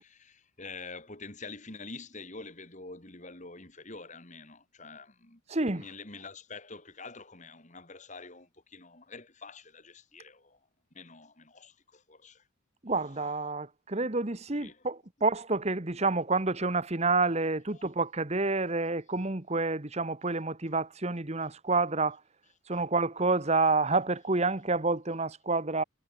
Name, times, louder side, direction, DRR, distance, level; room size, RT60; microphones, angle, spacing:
voice 1, 0.0-5.4 5.7-10.7 10.9-12.5 14.5-14.9 17.7-17.8 22.7-22.8, left 3 dB, 35° left, 3.3 m, -46 dB
voice 2, 5.5-5.8 12.8-22.2 22.7-25.8, right 3 dB, 30° right, 1.3 m, -28 dB
head